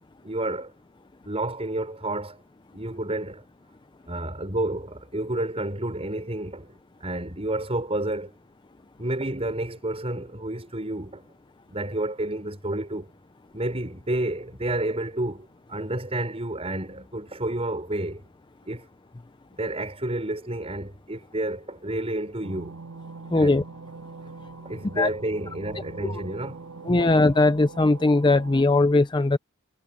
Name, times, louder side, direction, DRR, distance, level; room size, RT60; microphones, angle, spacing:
voice 1, 0.2-0.7 1.2-2.4 2.7-3.4 4.1-8.3 9.0-11.3 11.7-13.1 13.5-18.2 18.7-18.9 19.5-22.8 23.3-23.6 24.6-26.6 27.0-27.1, right 1 dB, 30° right, 6.0 m, -30 dB
sound 1, 22.4-28.6, right 4 dB, 85° right, 3.4 m, -43 dB
voice 2, 23.3-23.6 25.0-25.1 26.0-26.1 26.9-29.4, left 2 dB, 20° left, 0.5 m, -20 dB
head